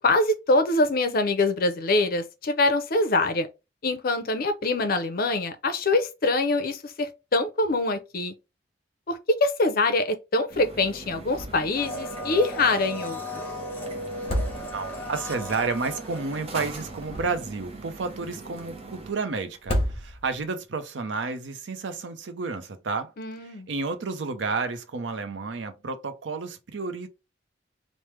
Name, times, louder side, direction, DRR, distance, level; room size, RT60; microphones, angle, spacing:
voice 1, 0.0-3.5 3.8-8.3 9.1-13.4 23.2-23.7, left 2 dB, 55° left, 0.6 m, -24 dB
sound 1, 10.5-19.1, right 2 dB, 35° right, 0.7 m, -42 dB
sound 2, 11.3-11.8 12.1-12.2 14.1-15.1 16.8-17.7 19.5-20.5, equal, 35° left, 1.0 m, -30 dB
Domestic sounds home sounds, 11.8-17.0 17.3-17.4, equal, 10° left, 0.8 m, -36 dB
voice 2, 14.7-23.1 23.4-27.1, right 4 dB, 80° right, 0.6 m, -31 dB
3.2 x 2.1 x 3.2 m
head